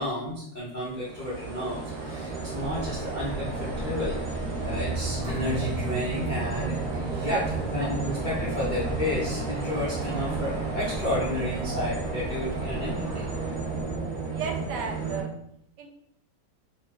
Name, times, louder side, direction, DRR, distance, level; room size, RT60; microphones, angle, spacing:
voice 1, 0.0-13.3, left 1 dB, 70° left, -8 dB, 0.4 m, -32 dB
sound 1, 0.8-15.2, right 3 dB, 40° right, 0.6 m, -32 dB
sound 2, 2.5-14.0, equal, ahead, 0.7 m, -40 dB
voice 2, 14.3-15.3 15.8-15.9, right 5 dB, 75° right, 3 dB, 1.1 m, -33 dB
2.8 x 2.3 x 3.3 m, 0.73 s
omnidirectional pair, 2.0 m